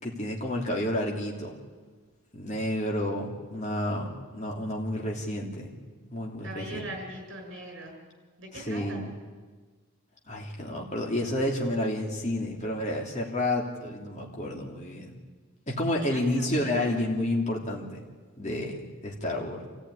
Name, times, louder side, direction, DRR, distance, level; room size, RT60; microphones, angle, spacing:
voice 1, 0.0-1.6 2.3-5.8 6.1-6.9 8.5-9.1 10.3-15.1 15.7-18.0 18.4-19.7, left 1 dB, 30° left, -1 dB, 2.9 m, -30 dB
voice 2, 3.8-4.2 6.4-8.0 8.4-9.1 16.0-16.9, right 1 dB, 55° right, 2 dB, 6.3 m, -41 dB
26.5 x 15.0 x 9.8 m, 1.4 s
head